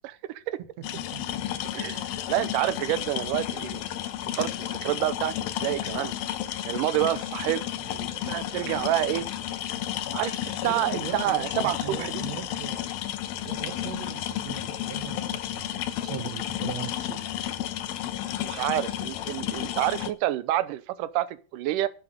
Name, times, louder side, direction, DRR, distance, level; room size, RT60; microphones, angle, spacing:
voice 1, 0.3-0.6 1.7-3.8 4.3-6.1 6.7-7.6 7.9-9.3 10.1-12.1 18.4-21.9, right 14 dB, 75° right, 2.2 m, -28 dB
sound 1, 0.8-20.1, left 12 dB, 85° left, 2.8 m, -32 dB
voice 2, 10.6-12.8 13.4-17.2, right 9 dB, 60° right, 2.2 m, -39 dB
12.0 x 7.6 x 6.5 m
omnidirectional pair, 4.1 m